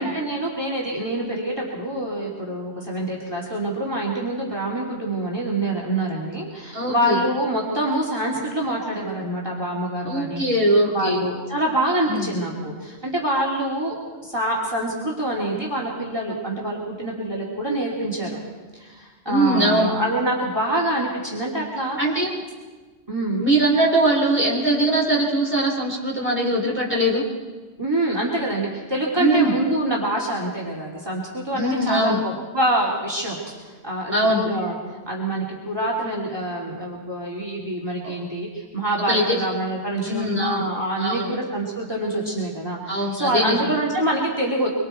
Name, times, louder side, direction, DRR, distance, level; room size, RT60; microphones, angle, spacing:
voice 1, 0.0-10.6 10.8-14.0 14.2-18.4 18.7-22.0 23.1-23.4 27.8-33.6 33.8-34.8 35.1-44.7, right 1 dB, 20° right, -4 dB, 3.1 m, -26 dB
voice 2, 6.7-7.2 10.0-11.2 12.1-12.3 19.3-19.9 22.0-22.3 23.4-27.2 29.2-29.5 31.5-32.2 34.1-34.5 38.0-38.2 39.1-39.4 40.0-40.7 41.0-41.3 42.9-43.7, right 1 dB, 10° left, -4 dB, 4.3 m, -21 dB
25.0 x 24.0 x 4.6 m, 1.3 s
omnidirectional pair, 1.1 m